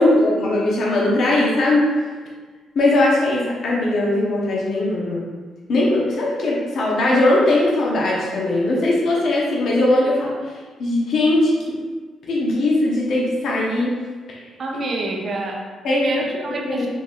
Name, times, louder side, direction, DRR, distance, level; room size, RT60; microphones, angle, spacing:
voice 1, 0.0-1.9 2.7-5.3 5.7-10.3 10.8-11.5 12.3-14.0 14.3-14.4 15.8-16.1 16.7-16.9, left 2 dB, 65° left, -4 dB, 0.8 m, -19 dB
voice 2, 14.6-16.9, right 2 dB, 45° right, -1 dB, 0.7 m, -27 dB
4.0 x 3.7 x 2.4 m, 1.4 s
cardioid pair, 90°, 0 cm